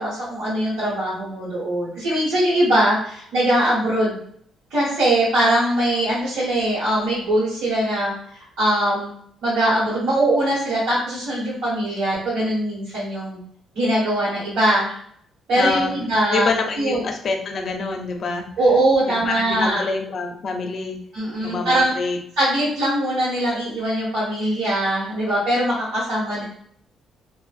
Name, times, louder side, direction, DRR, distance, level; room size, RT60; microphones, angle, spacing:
voice 1, 0.0-4.2 4.7-9.1 9.4-13.4 13.7-14.9 15.5-16.5 16.8-17.0 18.6-19.9 21.1-21.9 22.4-26.4, right 1 dB, 85° right, -10 dB, 1.3 m, -21 dB
voice 2, 15.5-15.9 16.3-18.5 19.1-21.0 21.4-22.2, left 3 dB, 55° left, 4 dB, 0.4 m, -26 dB
2.4 x 2.4 x 2.4 m, 0.64 s
cardioid pair, 90°, 0 cm